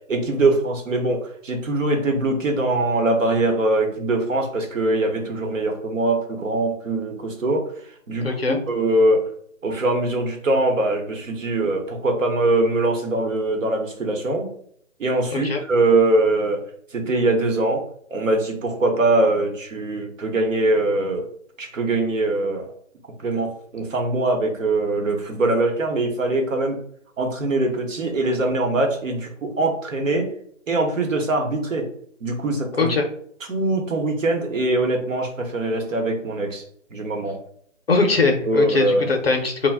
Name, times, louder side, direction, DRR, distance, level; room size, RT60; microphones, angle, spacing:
voice 1, 0.1-7.6 8.1-9.2 9.6-14.5 15.0-16.6 16.9-17.8 18.1-21.2 21.6-22.7 23.2-26.8 27.2-30.3 30.7-31.9 32.2-32.9 33.5-36.6 36.9-37.4 38.5-39.1, right 2 dB, 75° right, 3 dB, 0.9 m, -22 dB
voice 2, 8.2-8.6 15.3-15.6 32.8-33.1 37.9-39.7, left 3 dB, 50° left, 3 dB, 0.5 m, -21 dB
2.4 x 2.1 x 3.3 m, 0.64 s
hypercardioid pair, 165°, 39 cm